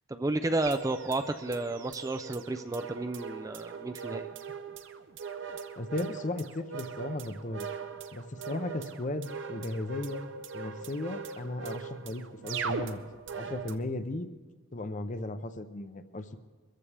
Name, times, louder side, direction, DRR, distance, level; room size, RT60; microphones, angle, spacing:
voice 1, 0.1-4.3, right 2 dB, 15° right, 9 dB, 0.3 m, -32 dB
sound 1, 0.6-13.8, right 6 dB, 60° right, 0.6 m, -40 dB
voice 2, 5.8-7.7 8.1-10.3 10.5-13.0 13.3-14.3 14.7-16.4, left 2 dB, 35° left, 10 dB, 0.6 m, -36 dB
23.5 x 14.0 x 3.4 m, 1.3 s
head